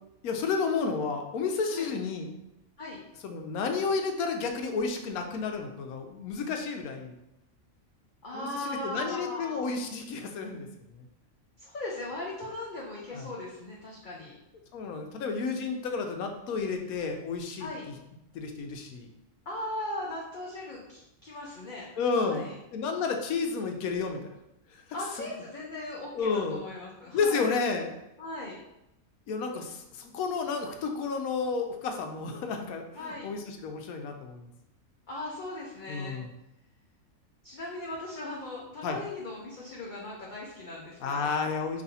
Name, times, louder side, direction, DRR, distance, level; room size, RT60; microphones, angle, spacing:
voice 1, 0.2-2.3 3.2-7.1 8.3-11.0 13.1-13.3 14.7-17.7 18.3-19.1 22.0-24.2 24.7-24.8 25.2-25.3 26.1-26.6 27.1-27.9 29.3-34.5 35.9-36.3 38.8-39.0 41.0-41.8, left 4 dB, 90° left, 5 dB, 1.1 m, -31 dB
voice 2, 8.2-9.8 11.6-14.4 17.6-17.8 19.5-21.9 22.1-22.5 24.9-27.5 28.2-28.6 32.9-33.3 35.1-36.2 37.4-41.3, left 1 dB, 50° left, -4 dB, 0.6 m, -38 dB
5.2 x 2.7 x 2.7 m, 0.87 s
omnidirectional pair, 1.5 m